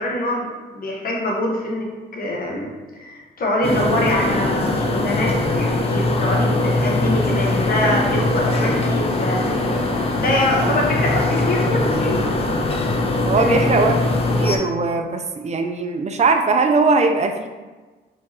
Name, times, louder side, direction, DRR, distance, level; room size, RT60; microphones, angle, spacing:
voice 1, 0.0-9.4 10.1-12.2 13.3-14.0, left 1 dB, 55° left, -1 dB, 1.2 m, -24 dB
sound 1, 3.6-14.6, left 2 dB, 30° left, 0.6 m, -21 dB
voice 2, 13.3-13.9 14.4-17.5, right 4 dB, 40° right, 5 dB, 0.5 m, -20 dB
4.9 x 3.7 x 2.8 m, 1.3 s
cardioid pair, 100°, 19 cm